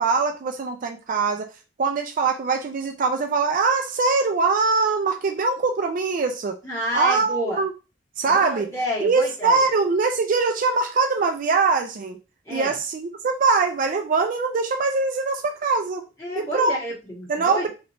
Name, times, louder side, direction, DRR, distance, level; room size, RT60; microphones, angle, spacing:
voice 1, 0.0-1.5 1.8-6.6 6.9-7.7 8.2-8.7 9.0-12.2 12.5-16.0 16.4-16.8 17.3-17.7, right 4 dB, 50° right, 6 dB, 0.4 m, -22 dB
voice 2, 6.6-7.6 8.2-9.6 12.5-12.8 16.2-17.7, equal, 20° left, -8 dB, 1.8 m, -29 dB
3.2 x 2.9 x 2.6 m, 0.31 s
head